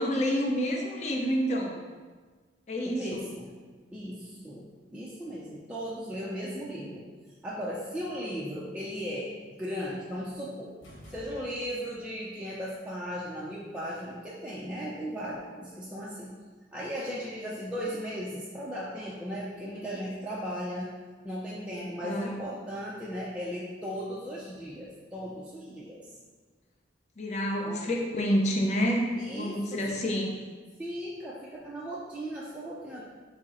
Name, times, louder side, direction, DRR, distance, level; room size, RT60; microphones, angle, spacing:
voice 1, 0.0-1.8 2.7-3.2 21.7-22.4 27.2-30.4, equal, 35° left, -1 dB, 0.6 m, -29 dB
voice 2, 2.8-3.5 3.9-7.1 7.4-9.3 9.6-10.7 11.1-16.3 16.7-20.9 21.2-26.1 27.6-27.8 29.2-29.6 30.8-33.0, equal, 5° right, -7 dB, 0.4 m, -36 dB
sound 1, 10.8-12.0, equal, 75° left, 1.1 m, -50 dB
5.9 x 2.0 x 4.1 m, 1.4 s
head